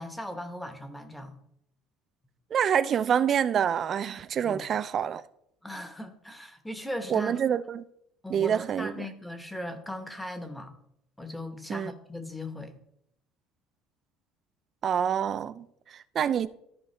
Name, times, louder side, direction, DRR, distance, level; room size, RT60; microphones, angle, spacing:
voice 1, 0.0-1.3 4.4-4.7 5.6-7.4 8.2-10.7 11.2-12.8, left 1 dB, 5° left, 0.9 m, -38 dB
voice 2, 2.5-5.2 7.1-7.8 8.3-9.1 11.7-11.9 14.8-16.5, right 8 dB, 35° right, 0.4 m, -27 dB
13.5 x 4.7 x 3.2 m
cardioid pair, 150°, 0 cm